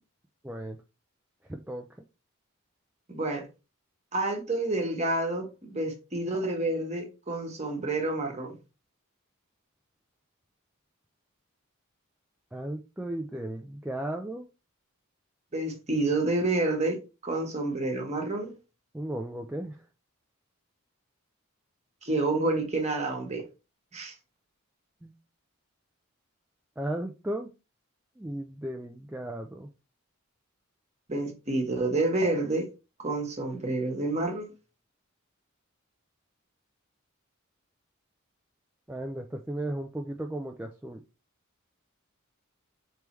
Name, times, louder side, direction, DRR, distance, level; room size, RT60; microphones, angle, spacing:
voice 1, 0.4-0.8 1.5-1.8 12.5-14.5 18.9-19.8 25.0-25.1 26.8-27.5 28.2-29.7 38.9-41.0, right 1 dB, 5° right, 0.3 m, -35 dB
voice 2, 3.1-3.5 4.1-8.6 15.5-18.5 22.0-23.4 23.9-24.1 31.1-32.7 33.0-34.5, right 2 dB, 30° right, 1.2 m, -29 dB
4.7 x 3.4 x 3.0 m
head